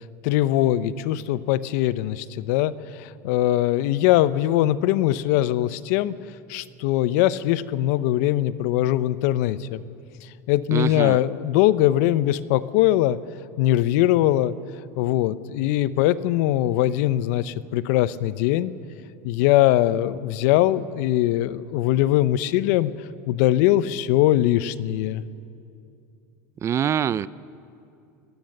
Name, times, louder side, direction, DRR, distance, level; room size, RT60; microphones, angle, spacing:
voice 1, 0.2-6.2 6.5-9.8 10.5-13.2 13.6-14.5 15.0-18.7 19.2-22.9 23.3-25.2, left 14 dB, 70° left, 16 dB, 0.8 m, -21 dB
voice 2, 10.7-11.2 26.6-27.3, right 9 dB, 30° right, 19 dB, 0.6 m, -24 dB
29.0 x 18.5 x 6.7 m, 2.5 s
supercardioid pair, 110°, 9 cm